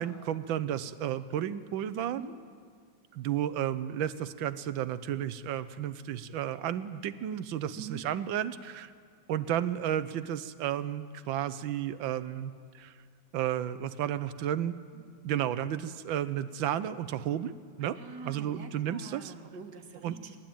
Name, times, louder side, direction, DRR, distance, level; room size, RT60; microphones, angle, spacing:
voice 1, 0.0-2.2 3.1-8.9 9.3-12.9 13.3-14.8 15.2-17.5 17.8-19.3 20.0-20.2, right 10 dB, 80° right, 14 dB, 1.5 m, -32 dB
voice 2, 17.8-20.4, right 5 dB, 60° right, 5 dB, 1.9 m, -45 dB
26.5 x 11.5 x 8.9 m, 2.1 s
omnidirectional pair, 2.1 m